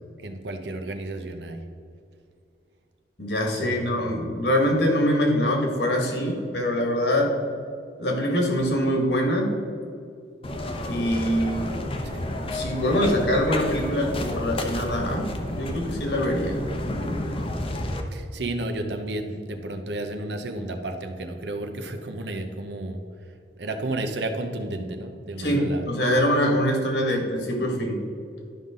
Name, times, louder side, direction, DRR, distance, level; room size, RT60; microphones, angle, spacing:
voice 1, 0.2-1.7 3.6-4.3 12.0-12.3 18.1-23.0 23.6-25.9, right 2 dB, 70° right, 5 dB, 0.9 m, -32 dB
voice 2, 3.2-7.4 8.0-9.6 10.9-11.8 12.5-16.6 25.4-28.0, equal, 70° left, 1 dB, 1.8 m, -24 dB
sound 1, 10.4-18.0, left 1 dB, 35° left, 0.8 m, -31 dB
12.0 x 5.5 x 3.8 m, 2.4 s
head